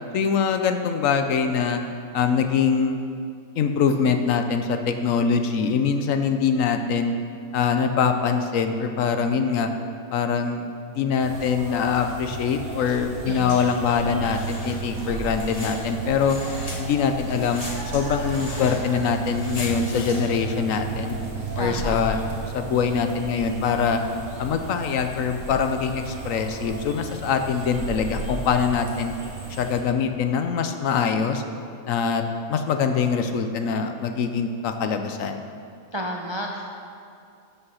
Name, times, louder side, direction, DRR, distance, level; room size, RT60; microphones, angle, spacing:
voice 1, 0.1-1.8 2.1-3.0 3.6-7.1 7.5-9.7 10.1-16.4 16.8-17.7 17.9-21.2 21.6-22.2 22.5-24.0 24.4-29.1 29.6-31.4 31.9-32.2 32.5-35.4, left 6 dB, 70° left, 7 dB, 1.0 m, -23 dB
sound 1, 11.2-29.8, right 4 dB, 60° right, 1.8 m, -34 dB
voice 2, 13.3-13.6 21.6-21.9 35.9-36.7, equal, 35° right, 0 dB, 0.4 m, -31 dB
sound 2, 13.9-22.5, left 1 dB, 30° left, 1.1 m, -37 dB
12.5 x 5.7 x 5.5 m, 2.4 s
omnidirectional pair, 1.5 m